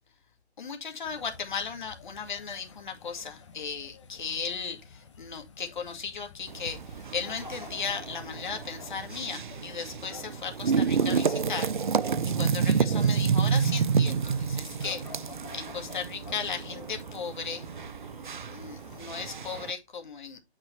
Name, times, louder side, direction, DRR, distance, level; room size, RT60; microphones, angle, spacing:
voice 1, 0.6-6.8 7.1-12.1 12.4-15.3 15.5-17.7 18.5-20.4, left 6 dB, 45° left, 2.1 m, -36 dB
sound 1, 1.0-19.6, left 5 dB, 25° left, 1.2 m, -51 dB
sound 2, 6.5-19.7, right 6 dB, 50° right, 0.4 m, -29 dB
sound 3, 12.1-18.8, right 6 dB, 20° right, 1.3 m, -51 dB
9.0 x 3.9 x 4.5 m
figure-of-eight pair, 160°, 33 cm